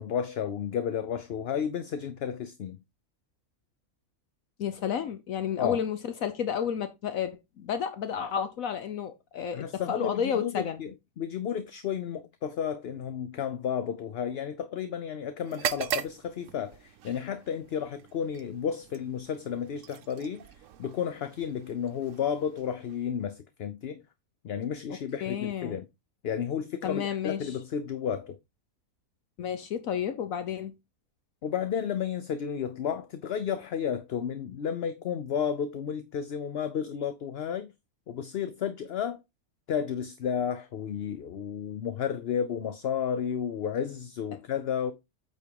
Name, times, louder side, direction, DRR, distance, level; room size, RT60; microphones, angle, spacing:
voice 1, 0.0-2.8 5.6-5.8 9.5-20.5 20.8-24.0 24.4-25.9 26.2-28.4 31.4-37.7 38.1-39.2 39.7-44.9, left 8 dB, 55° left, 0.8 m, -32 dB
voice 2, 4.6-10.8 25.2-25.8 26.8-27.6 29.4-30.7, left 8 dB, 70° left, 1.2 m, -31 dB
sound 1, 15.4-23.3, right 8 dB, 70° right, 1.0 m, -40 dB
8.6 x 4.5 x 4.7 m
omnidirectional pair, 1.5 m